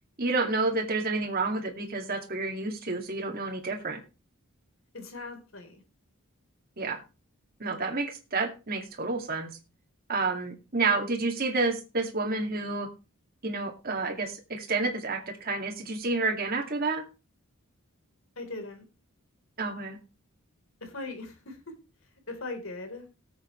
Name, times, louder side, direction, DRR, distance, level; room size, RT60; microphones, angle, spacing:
voice 1, 0.2-4.0 6.8-7.0 7.6-9.5 10.1-12.9 13.4-17.0 19.6-20.0, right 3 dB, 45° right, 1 dB, 2.2 m, -29 dB
voice 2, 4.9-5.8 18.4-18.8 20.8-21.6 22.3-23.1, left 2 dB, 65° left, 6 dB, 3.7 m, -39 dB
19.0 x 8.1 x 3.1 m, 0.30 s
head